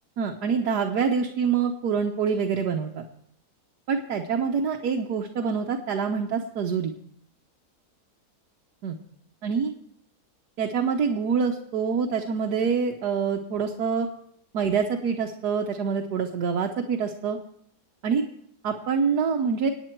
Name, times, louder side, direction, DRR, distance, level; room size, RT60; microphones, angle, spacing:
voice 1, 0.2-3.0 3.9-6.9 8.8-9.0 9.4-9.7 10.6-14.1 14.5-17.4 18.0-18.2 18.6-19.7, right 6 dB, 80° right, 2 dB, 1.5 m, -26 dB
26.0 x 9.1 x 4.5 m, 0.69 s
omnidirectional pair, 1.7 m